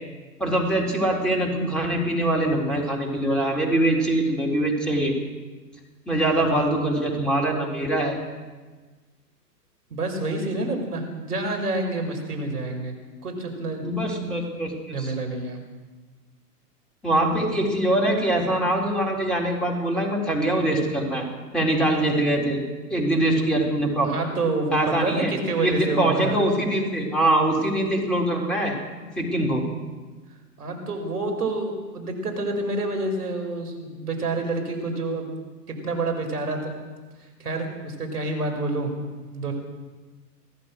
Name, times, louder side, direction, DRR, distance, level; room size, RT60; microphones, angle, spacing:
voice 1, 0.4-5.1 6.1-8.2 13.8-15.1 17.0-21.3 21.5-22.6 22.9-24.1 24.7-25.3 25.6-28.8 29.2-29.6, right 1 dB, ahead, -2 dB, 4.1 m, -23 dB
voice 2, 9.9-12.9 13.2-13.9 14.9-15.6 24.0-26.4 30.6-35.3 35.7-36.7 37.4-39.5, right 2 dB, 70° right, 4 dB, 5.9 m, -28 dB
25.0 x 16.5 x 6.6 m, 1.3 s
figure-of-eight pair, 120°, 48 cm